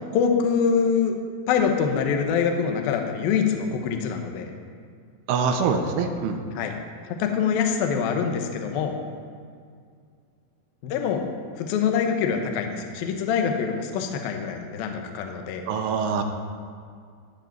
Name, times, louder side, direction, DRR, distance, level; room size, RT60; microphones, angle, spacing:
voice 1, 0.1-1.1 1.5-4.5 6.6-6.7 7.1-9.0 10.8-11.3 11.6-15.6, left 6 dB, 85° left, 4 dB, 2.0 m, -24 dB
voice 2, 5.3-6.4 15.6-16.2, right 5 dB, 80° right, 5 dB, 3.2 m, -24 dB
15.0 x 5.1 x 9.3 m, 2.1 s
omnidirectional pair, 5.8 m